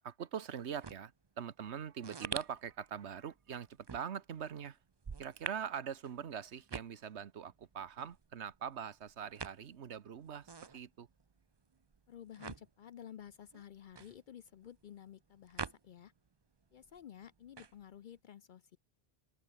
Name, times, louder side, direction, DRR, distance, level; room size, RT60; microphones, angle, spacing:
voice 1, 0.0-4.8 5.2-11.1, right 8 dB, 80° right, 1.3 m, -43 dB
sound 1, 0.6-16.3 16.6-18.2, right 5 dB, 35° right, 0.5 m, -47 dB
voice 2, 12.1-16.1 16.7-18.8, left 10 dB, 60° left, 0.6 m, -52 dB
open air
omnidirectional pair, 1.1 m